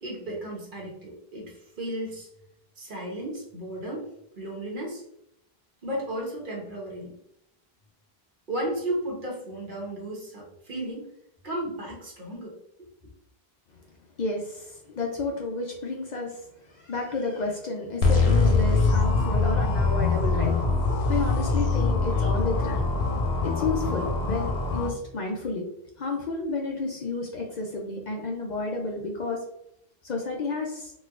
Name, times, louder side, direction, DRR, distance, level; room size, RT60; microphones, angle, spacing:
voice 1, 0.0-2.3 2.8-4.1 4.4-5.0 5.8-7.1 8.5-11.1 11.4-12.6, right 1 dB, 55° right, -3 dB, 1.1 m, -34 dB
voice 2, 14.2-20.7 21.0-22.8 23.4-25.7 26.0-29.4 30.0-30.9, left 3 dB, 55° left, 0 dB, 0.6 m, -31 dB
sound 1, 18.0-24.9, left 3 dB, 85° left, 1.0 m, -23 dB
4.1 x 2.3 x 2.3 m, 0.78 s
omnidirectional pair, 1.0 m